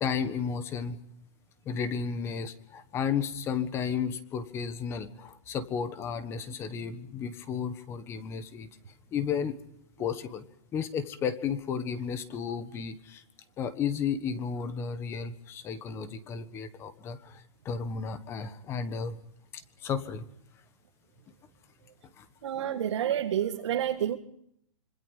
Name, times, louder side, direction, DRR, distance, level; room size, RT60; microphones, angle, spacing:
voice 1, 0.0-1.0 1.6-8.7 9.1-9.6 10.0-10.4 10.7-13.2 13.6-19.1 19.5-20.2 22.2-22.3, left 6 dB, 15° left, 12 dB, 1.4 m, -33 dB
voice 2, 22.4-24.2, right 10 dB, 55° right, 1 dB, 2.0 m, -29 dB
26.0 x 25.5 x 5.4 m, 0.72 s
hypercardioid pair, 165°, 17 cm